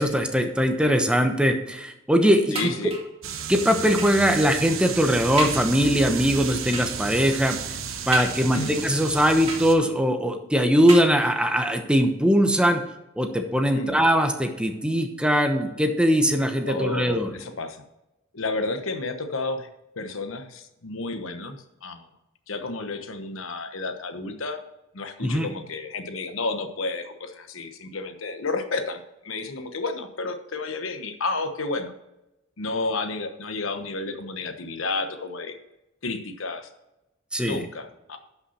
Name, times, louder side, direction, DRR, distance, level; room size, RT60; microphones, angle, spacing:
voice 1, 0.0-2.7 3.5-7.6 8.1-12.8 13.2-17.3 25.2-25.5 37.3-37.6, equal, 5° right, 5 dB, 0.9 m, -21 dB
voice 2, 2.5-2.9 8.5-8.7 13.7-14.0 16.6-17.8 18.3-19.7 20.0-22.1 22.5-24.6 24.9-31.9 32.6-35.6 36.0-36.7 37.4-38.2, left 3 dB, 80° left, 8 dB, 1.0 m, -31 dB
sound 1, 2.5-3.2 4.0-4.3 4.8-4.9 5.4-5.7 6.7-7.1 8.1-8.7 9.5-10.1 10.9-11.6 12.4-12.5 12.8-12.9, right 3 dB, 30° right, 2.2 m, -34 dB
sound 2, 3.2-9.8, right 6 dB, 85° right, 1.1 m, -33 dB
11.5 x 5.8 x 4.2 m, 0.93 s
head